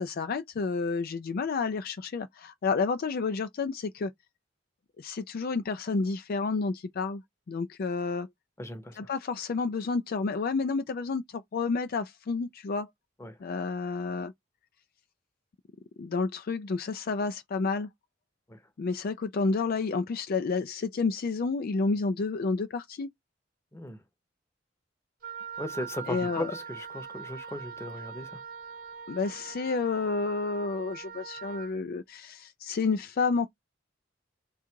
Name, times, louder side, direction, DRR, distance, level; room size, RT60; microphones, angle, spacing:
voice 1, 0.0-4.1 5.0-7.2 7.5-8.3 9.0-12.9 13.4-14.3 16.0-17.9 18.8-23.1 26.1-26.5 29.1-33.5, left 4 dB, 50° left, 0.4 m, -30 dB
voice 2, 8.6-9.1 13.2-13.4 18.5-18.6 23.7-24.0 25.6-28.4, left 1 dB, 15° left, 0.8 m, -37 dB
Wind instrument woodwind instrument, 25.2-31.7, right 6 dB, 50° right, 0.9 m, -42 dB
3.7 x 2.3 x 4.4 m
head